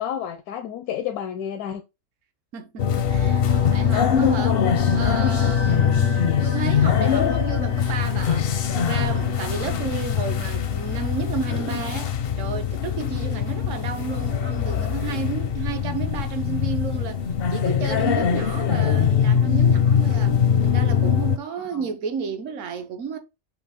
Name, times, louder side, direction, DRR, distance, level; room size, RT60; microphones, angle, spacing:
voice 1, 0.0-1.8 9.6-9.8 21.7-21.9, left 9 dB, 85° left, 1.1 m, -30 dB
voice 2, 2.5-4.6 4.9-8.5 8.8-17.2 17.5-23.2, right 6 dB, 65° right, 1.0 m, -32 dB
sound 1, 2.8-21.4, left 7 dB, 65° left, 0.6 m, -22 dB
5.9 x 2.4 x 3.4 m
omnidirectional pair, 1.6 m